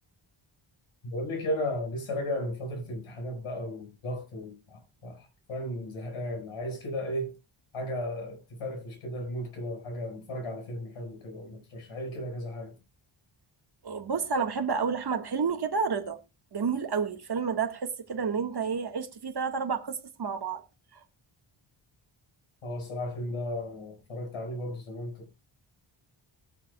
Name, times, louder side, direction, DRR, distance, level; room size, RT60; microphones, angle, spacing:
voice 1, 1.0-7.3 7.7-12.7 22.6-25.5, left 1 dB, 90° left, 5.2 m, -35 dB
voice 2, 13.8-16.2 16.5-20.6, right 5 dB, 50° right, 1.7 m, -30 dB
21.5 x 7.4 x 2.3 m
wide cardioid pair, 125°, 49 cm